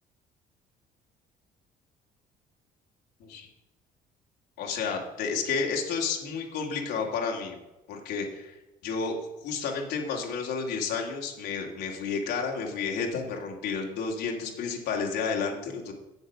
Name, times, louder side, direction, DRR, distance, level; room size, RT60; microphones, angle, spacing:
voice 1, 4.6-7.6 7.9-8.6 8.8-9.1 9.4-15.9, left 5 dB, 80° left, 1 dB, 2.0 m, -31 dB
8.0 x 7.6 x 7.1 m, 0.98 s
cardioid pair, 110°, 17 cm